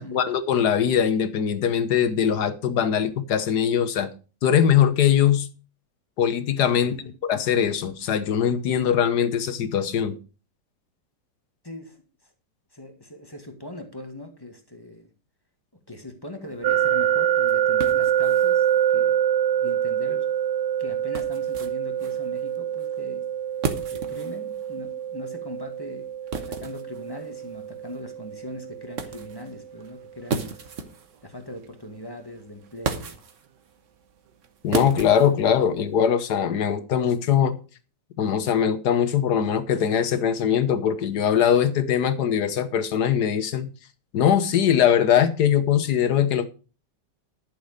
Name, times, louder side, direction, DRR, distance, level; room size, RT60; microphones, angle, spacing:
voice 1, 0.1-4.1 4.4-5.5 6.2-6.9 7.3-10.1 34.6-37.6 38.2-43.7 44.1-46.4, left 8 dB, 65° left, 1.5 m, -21 dB
voice 2, 6.7-7.1 11.6-12.0 12.2-12.3 12.7-15.1 15.9-18.7 18.9-19.2 19.5-20.3 20.8-23.2 23.9-26.1 26.3-30.7 31.2-33.2, left 1 dB, 15° left, 1.8 m, -40 dB
sound 1, 16.4-36.0, right 5 dB, 50° right, 1.4 m, -37 dB
sound 2, 16.6-29.5, right 10 dB, 75° right, 1.4 m, -25 dB
11.5 x 7.0 x 5.0 m
omnidirectional pair, 1.9 m